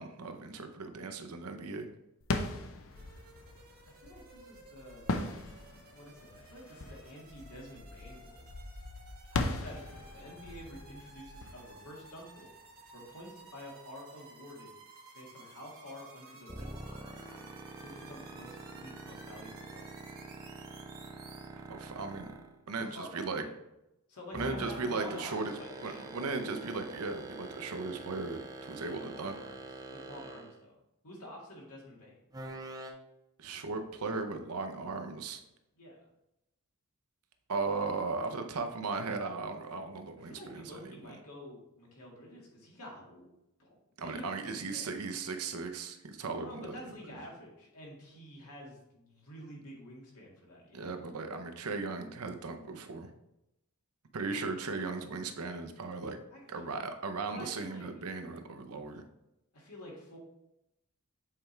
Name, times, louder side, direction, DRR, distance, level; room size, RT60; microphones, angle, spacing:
voice 1, 0.0-1.9 21.7-22.3 22.7-23.4 24.3-25.5 25.8-29.4 33.4-35.4 37.5-41.0 44.0-46.8 50.7-53.1 54.1-56.2 56.5-59.0, right 3 dB, 75° right, 6 dB, 0.7 m, -37 dB
sound 1, 2.2-12.8, left 2 dB, 65° left, 0.6 m, -39 dB
voice 2, 2.5-2.8 3.9-5.1 5.9-8.4 9.3-12.5 12.9-14.7 15.1-17.4 17.8-19.9 22.7-23.5 24.1-26.2 28.7-30.8 31.0-32.2 35.7-36.0 40.2-43.3 43.6-43.8 44.0-44.9 46.3-51.0 56.3-56.4 57.3-57.9 59.5-60.2, equal, 80° left, -2 dB, 2.0 m, -49 dB
sound 2, 2.9-21.5, right 3 dB, 45° right, 1.6 m, -55 dB
sound 3, 16.5-22.6 24.3-30.6 32.3-32.9, right 2 dB, 15° right, 0.6 m, -45 dB
7.6 x 4.5 x 3.3 m, 0.88 s
head